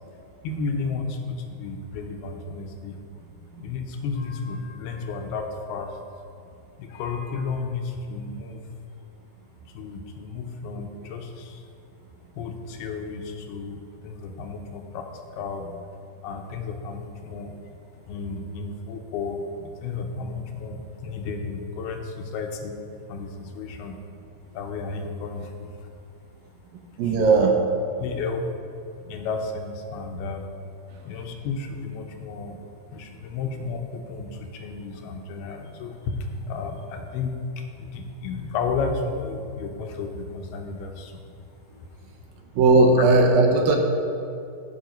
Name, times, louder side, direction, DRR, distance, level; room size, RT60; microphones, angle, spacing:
voice 1, 0.4-3.0 3.6-6.1 6.8-8.6 9.7-11.7 12.3-15.7 16.2-17.6 18.1-22.8 23.1-24.0 24.5-25.9 27.0-27.4 28.0-28.4 29.1-30.4 31.1-32.6 32.9-41.2 41.8-41.9, left 4 dB, 85° left, 4 dB, 2.9 m, -33 dB
voice 2, 27.0-27.5 29.1-29.2 42.6-43.8, right 3 dB, 75° right, 3 dB, 2.6 m, -17 dB
13.5 x 7.6 x 5.3 m, 2.5 s
omnidirectional pair, 4.4 m